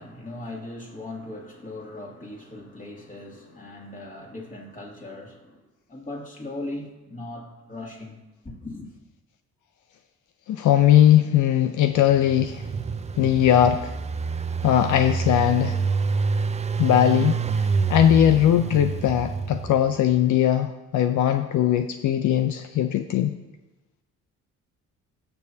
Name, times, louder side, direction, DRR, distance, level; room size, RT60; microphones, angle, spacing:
voice 1, 0.0-5.6 5.9-8.2 8.4-8.9, left 2 dB, 25° left, 2.5 m, -38 dB
voice 2, 10.5-12.7 13.2-13.9 14.6-15.8 16.8-17.4 17.9-23.3, left 11 dB, 75° left, 0.6 m, -19 dB
Engine, 11.9-20.0, right 5 dB, 20° right, 0.5 m, -27 dB
17.0 x 6.9 x 2.8 m
cardioid pair, 90°, 30 cm